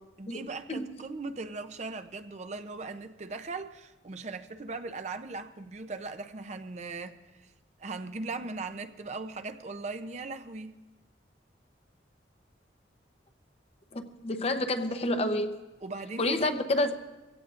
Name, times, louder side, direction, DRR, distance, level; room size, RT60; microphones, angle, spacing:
voice 1, 0.2-7.5 7.8-10.7 15.8-16.6, right 3 dB, 40° right, 0.5 m, -39 dB
voice 2, 13.9-15.6 16.2-16.9, left 1 dB, 35° left, 0.7 m, -29 dB
23.0 x 16.5 x 2.5 m
head